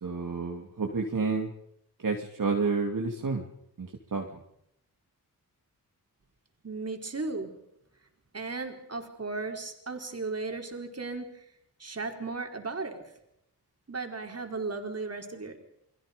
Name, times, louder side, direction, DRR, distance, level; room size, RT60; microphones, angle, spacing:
voice 1, 0.0-1.5 2.0-3.4 3.8-4.2, right 4 dB, 60° right, 1 dB, 2.8 m, -30 dB
voice 2, 6.6-7.5 8.3-11.3 11.8-13.0 13.9-15.6, right 3 dB, 40° right, 3 dB, 4.5 m, -35 dB
30.0 x 22.0 x 5.3 m, 0.78 s
wide cardioid pair, 85°, 38 cm